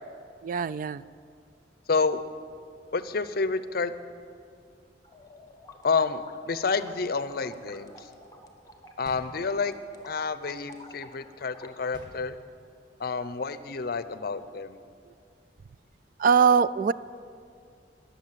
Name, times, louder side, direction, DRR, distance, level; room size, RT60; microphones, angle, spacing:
voice 1, 0.4-1.0 16.2-16.9, right 6 dB, 50° right, 17 dB, 0.3 m, -22 dB
voice 2, 1.9-2.2 2.9-3.9 5.8-8.1 9.0-9.8 10.0-12.4 13.0-14.8, left 4 dB, 60° left, 13 dB, 0.6 m, -29 dB
sound 1, 5.0-12.1, left 1 dB, 20° left, 1.3 m, -51 dB
sound 2, 9.1-10.0 11.9-12.9, equal, 25° right, 1.8 m, -50 dB
20.5 x 7.1 x 7.5 m, 2.3 s
head